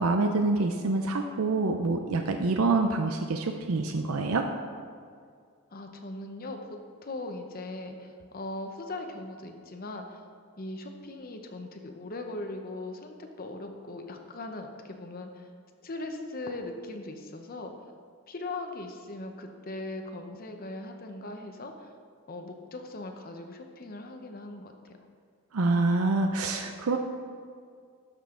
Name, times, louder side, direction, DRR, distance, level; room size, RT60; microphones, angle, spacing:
voice 1, 0.0-4.5 25.5-27.0, right 3 dB, 90° right, 5 dB, 0.6 m, -26 dB
voice 2, 5.7-10.2 10.6-15.5 15.8-17.9 18.3-21.9 22.3-25.0, left 2 dB, 45° left, 4 dB, 0.8 m, -39 dB
12.5 x 6.1 x 3.7 m, 2.1 s
head